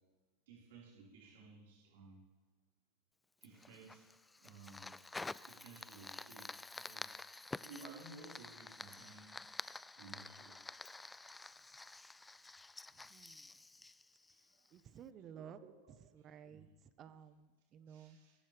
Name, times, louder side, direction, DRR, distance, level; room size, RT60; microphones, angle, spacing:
voice 1, 0.5-2.2 3.4-4.0 4.4-4.9 5.4-6.5 6.7-9.4 10.0-10.6 14.4-14.7 15.3-16.7 17.9-18.4, right 3 dB, 70° right, -6 dB, 5.3 m, -57 dB
Fire, 3.4-14.8, left 3 dB, 10° left, 0.4 m, -50 dB
voice 2, 13.1-13.5 14.7-15.6 16.1-16.7 17.0-18.2, right 8 dB, 40° right, 12 dB, 1.2 m, -54 dB
22.0 x 15.0 x 3.6 m, 1.3 s
hypercardioid pair, 95°, 0 cm